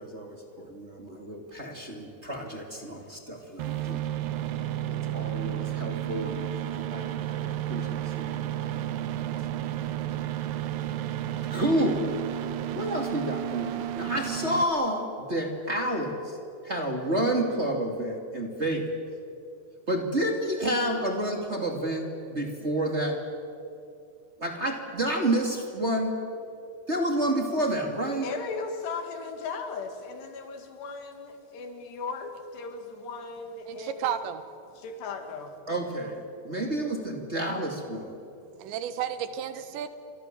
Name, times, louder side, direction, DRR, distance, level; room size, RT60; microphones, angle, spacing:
voice 1, 0.0-4.2 4.9-8.6 11.5-12.0 12.7-16.4 16.6-18.9 19.9-23.2 24.4-26.2 26.9-28.3 35.7-38.2, right 1 dB, 20° right, 2 dB, 2.0 m, -30 dB
sound 1, 3.6-14.6, right 12 dB, 70° right, 2.3 m, -32 dB
voice 2, 28.2-34.3 34.8-35.6, left 4 dB, 75° left, 5 dB, 4.0 m, -37 dB
voice 3, 33.7-34.4 38.6-39.9, right 9 dB, 90° right, 10 dB, 3.6 m, -32 dB
29.5 x 25.0 x 7.6 m, 2.6 s
omnidirectional pair, 5.0 m